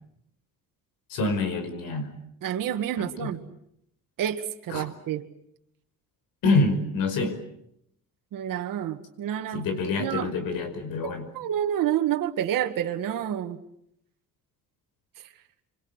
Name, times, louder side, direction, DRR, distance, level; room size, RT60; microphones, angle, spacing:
voice 1, 1.1-2.1 3.0-3.3 4.7-4.9 6.4-7.4 9.5-11.2, left 3 dB, 85° left, 5.3 m, -26 dB
voice 2, 2.4-3.4 4.2-5.3 8.3-9.7 10.0-10.3 11.0-13.6, right 10 dB, 70° right, 2.0 m, -29 dB
28.0 x 24.5 x 8.2 m
cardioid pair, 115°, 34 cm